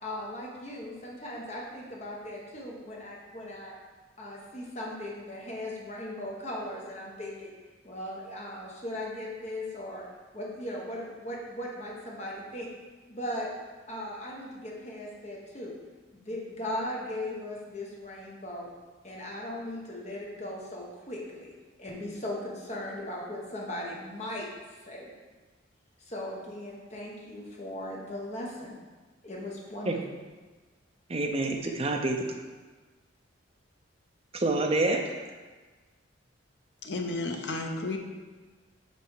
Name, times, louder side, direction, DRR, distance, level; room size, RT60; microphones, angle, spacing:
voice 1, 0.0-3.8 4.2-7.5 7.8-10.0 10.3-12.7 13.1-13.5 13.9-15.7 16.1-18.7 19.0-25.1 26.0-28.8 29.2-30.0, left 1 dB, 35° left, -3 dB, 1.0 m, -38 dB
voice 2, 31.1-32.3 34.3-35.1, right 2 dB, 30° right, 3 dB, 0.5 m, -27 dB
voice 3, 36.8-38.0, left 2 dB, 55° left, 3 dB, 0.6 m, -32 dB
5.4 x 4.4 x 4.7 m, 1.3 s
head